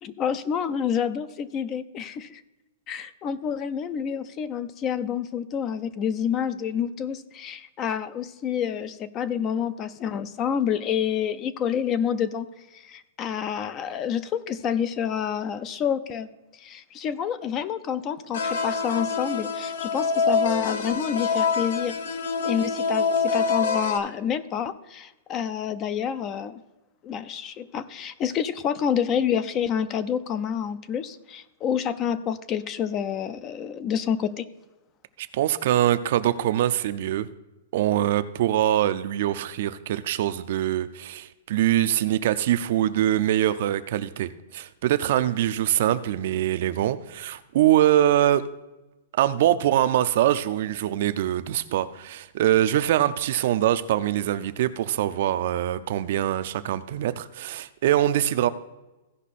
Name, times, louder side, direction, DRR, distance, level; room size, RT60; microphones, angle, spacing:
voice 1, 0.0-2.4 2.9-12.5 12.7-16.3 16.6-22.0 22.4-26.6 27.0-34.5, left 8 dB, 20° left, 14 dB, 0.5 m, -28 dB
sound 1, 18.3-24.0, left 4 dB, 85° left, 1.2 m, -25 dB
voice 2, 35.2-37.3 37.7-48.4 49.2-58.5, right 12 dB, 50° right, 12 dB, 0.5 m, -23 dB
15.5 x 5.4 x 4.2 m, 1.0 s
hypercardioid pair, 170°, 0 cm